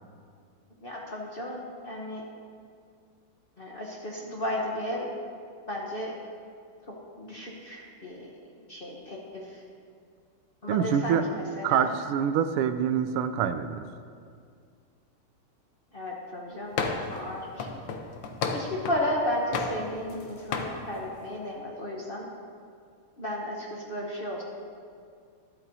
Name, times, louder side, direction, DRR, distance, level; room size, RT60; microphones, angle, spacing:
voice 1, 0.8-2.2 3.6-5.1 5.7-6.1 7.2-8.3 8.7-9.4 10.6-11.9 15.9-17.8 18.5-22.3 23.2-24.4, left 1 dB, 45° left, -2 dB, 0.7 m, -34 dB
voice 2, 10.7-11.2 11.6-13.8, right 8 dB, 90° right, 10 dB, 1.5 m, -26 dB
sound 1, 16.8-17.2 17.6-19.1 19.5-20.2 20.5-20.8, left 5 dB, 65° left, 1.4 m, -32 dB
13.0 x 12.5 x 2.7 m, 2.2 s
omnidirectional pair, 2.4 m